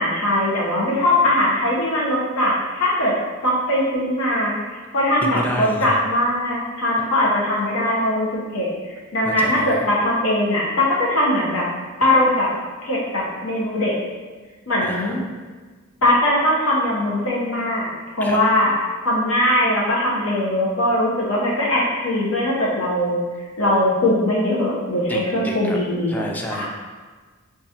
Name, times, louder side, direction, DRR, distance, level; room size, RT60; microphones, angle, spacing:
voice 1, 0.0-3.1 3.4-8.3 8.5-8.7 9.1-11.7 12.0-12.5 12.8-13.9 14.7-15.2 16.0-18.7 19.0-23.2 23.6-26.7, left 1 dB, 80° left, -4 dB, 0.8 m, -20 dB
voice 2, 5.3-5.9 9.2-9.8 14.8-15.3 18.2-18.4 25.1-25.8 26.1-26.7, left 1 dB, 10° left, 1 dB, 0.3 m, -30 dB
4.5 x 2.4 x 2.7 m, 1.4 s
head